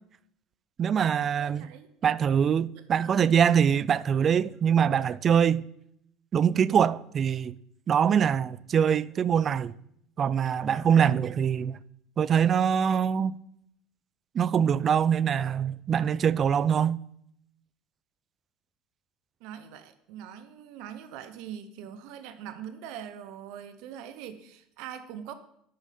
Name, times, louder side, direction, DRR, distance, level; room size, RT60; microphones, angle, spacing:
voice 1, 0.8-1.6 2.0-5.6 6.3-7.5 7.9-9.7 10.2-11.8 12.2-13.4 14.3-17.0, right 8 dB, 40° right, 0.3 m, -23 dB
voice 2, 1.4-1.9 2.7-2.8 19.4-25.3, right 9 dB, 70° right, 0.6 m, -42 dB
10.0 x 4.8 x 4.2 m
supercardioid pair, 90°, 0 cm